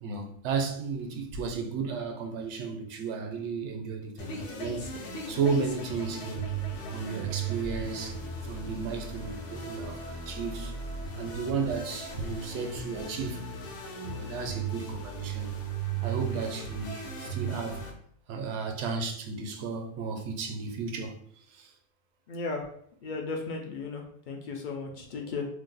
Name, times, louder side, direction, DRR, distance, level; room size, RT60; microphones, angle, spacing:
voice 1, 0.0-4.9 5.3-6.6 6.9-10.7 11.1-13.5 14.0-15.5 16.0-17.8 18.3-21.2 21.5-21.7, right 5 dB, 70° right, 0.8 m, -34 dB
sound 1, 4.2-17.9, right 4 dB, 75° left, 1.0 m, -36 dB
voice 2, 22.3-22.7 23.0-25.5, left 4 dB, 60° left, 0.5 m, -35 dB
2.6 x 2.2 x 3.8 m
omnidirectional pair, 1.3 m